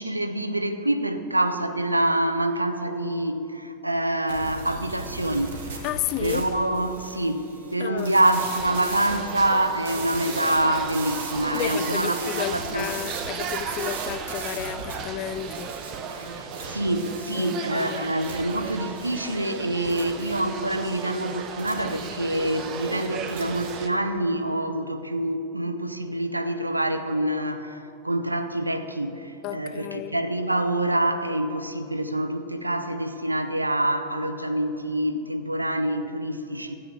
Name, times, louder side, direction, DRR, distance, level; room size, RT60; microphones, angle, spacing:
voice 1, 0.0-5.6 6.2-12.9 16.3-36.8, right 1 dB, 85° right, 0.7 m, -26 dB
sound 1, 4.3-23.8, right 3 dB, 60° right, 2.0 m, -38 dB
voice 2, 5.8-6.5 7.8-8.1 11.5-15.8 17.4-18.1 29.4-30.2, left 13 dB, 40° left, 0.4 m, -32 dB
sound 2, 8.3-23.9, right 7 dB, 35° right, 0.8 m, -36 dB
13.0 x 8.1 x 6.3 m
figure-of-eight pair, 90°, 0 cm